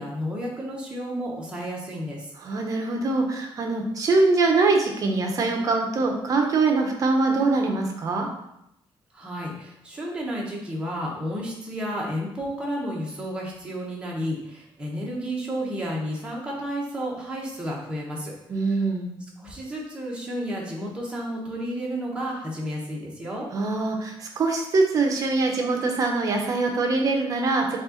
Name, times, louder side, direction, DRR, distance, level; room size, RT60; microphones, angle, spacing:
voice 1, 0.0-2.3 9.1-18.8 19.4-23.5, equal, 10° right, -3 dB, 0.9 m, -32 dB
voice 2, 2.4-8.3 18.5-19.1 23.5-27.8, right 3 dB, 40° right, 2 dB, 0.7 m, -23 dB
5.4 x 2.4 x 3.8 m, 0.83 s
cardioid pair, 175°, 9 cm